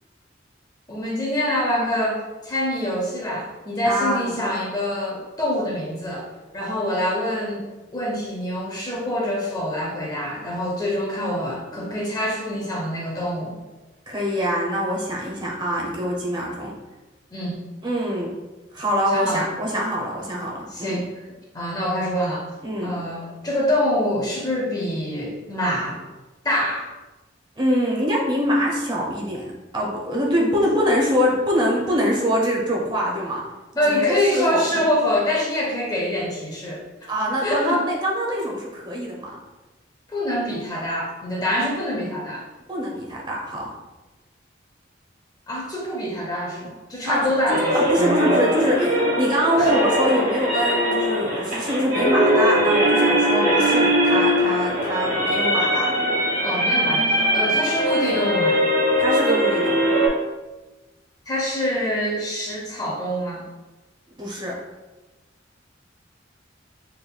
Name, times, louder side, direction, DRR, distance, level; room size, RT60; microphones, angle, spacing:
voice 1, 0.9-6.3 6.5-13.6 17.3-17.5 19.1-19.5 20.7-21.0 21.5-22.5 22.8-26.0 26.4-26.9 30.3-30.6 33.8-36.8 37.3-37.9 40.1-42.4 45.5-47.8 49.6-49.7 56.4-58.6 61.3-63.4, left 1 dB, 20° left, -3 dB, 0.6 m, -25 dB
voice 2, 3.8-4.3 11.7-11.9 14.1-16.8 17.8-18.3 18.7-21.0 22.6-22.9 27.6-33.4 33.9-34.6 37.1-39.4 42.7-43.7 47.1-47.3 47.7-55.9 57.5-57.6 59.0-60.0 64.2-64.6, equal, 25° right, -3 dB, 0.8 m, -24 dB
sound 1, 47.5-60.1, equal, 45° right, 1.2 m, -21 dB
4.4 x 3.4 x 2.2 m, 1.1 s
head